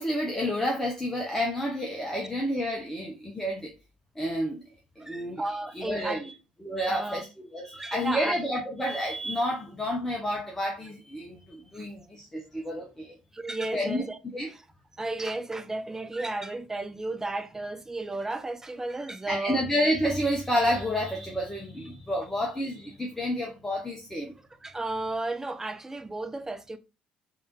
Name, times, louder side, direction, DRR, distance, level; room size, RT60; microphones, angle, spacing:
voice 1, 0.0-3.7 4.2-4.6 5.0-5.4 5.7-6.3 6.6-13.1 13.7-14.1 14.3-14.5 15.2-15.3 19.3-24.3, equal, 10° left, 0.8 m, -30 dB
voice 2, 5.0-6.2 6.9-7.2 7.7-8.3 11.7-11.8 13.3-14.2 15.0-19.6 24.6-26.8, right 2 dB, 15° right, 0.4 m, -33 dB
3.4 x 2.7 x 3.0 m
figure-of-eight pair, 50°, 3 cm